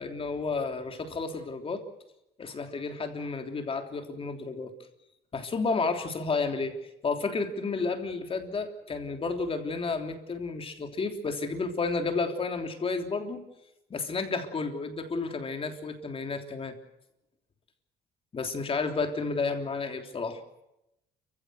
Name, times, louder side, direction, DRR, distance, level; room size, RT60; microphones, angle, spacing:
voice 1, 0.0-1.8 2.4-4.7 5.3-6.8 7.0-13.4 13.9-16.7 18.3-20.4, left 4 dB, 35° left, 5 dB, 3.4 m, -31 dB
29.5 x 16.0 x 8.1 m, 0.87 s
cardioid pair, 110°, 17 cm